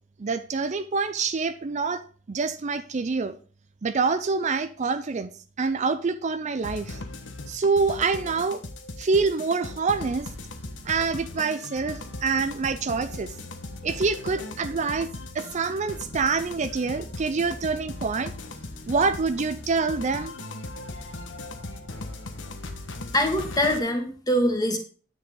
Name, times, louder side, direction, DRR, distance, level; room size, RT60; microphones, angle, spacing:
voice 1, 0.2-2.0 2.3-3.4 3.8-5.3 5.6-7.0 7.5-8.6 9.0-10.3 10.9-13.3 13.8-15.1 15.3-18.3 18.9-20.3, right 4 dB, 40° right, 0.5 m, -26 dB
sound 1, 6.6-23.8, left 2 dB, 85° left, 1.3 m, -38 dB
voice 2, 23.1-24.8, equal, 20° left, 1.8 m, -23 dB
9.8 x 7.6 x 3.8 m
head